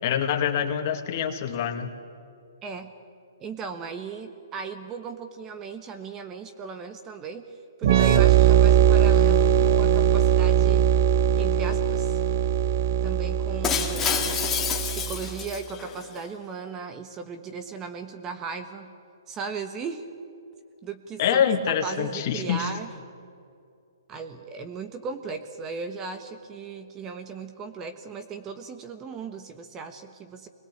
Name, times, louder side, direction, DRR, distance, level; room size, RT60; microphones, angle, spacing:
voice 1, 0.0-1.9 21.2-22.7, left 8 dB, 40° left, 5 dB, 2.2 m, -25 dB
voice 2, 2.6-2.9 3.4-7.4 7.8-10.9 11.4-12.2 13.0-14.4 14.9-18.9 19.3-20.1 20.8-21.4 21.8-22.9 24.1-30.5, right 5 dB, 15° right, 8 dB, 1.3 m, -37 dB
sound 1, 7.8-15.4, right 9 dB, 50° right, 1.2 m, -20 dB
Shatter, 13.6-16.0, left 7 dB, 15° left, 2.1 m, -28 dB
26.5 x 21.0 x 8.6 m, 2.4 s
hypercardioid pair, 155°, 2 cm